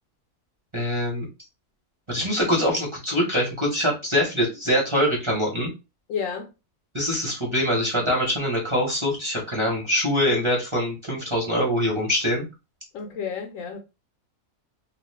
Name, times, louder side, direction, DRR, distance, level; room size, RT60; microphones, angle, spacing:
voice 1, 0.7-1.3 2.1-5.7 6.9-12.4, equal, 25° right, 0.9 m, -24 dB
voice 2, 6.1-6.5 12.9-13.8, left 6 dB, 70° left, 0.9 m, -31 dB
2.5 x 2.4 x 3.3 m
omnidirectional pair, 1.6 m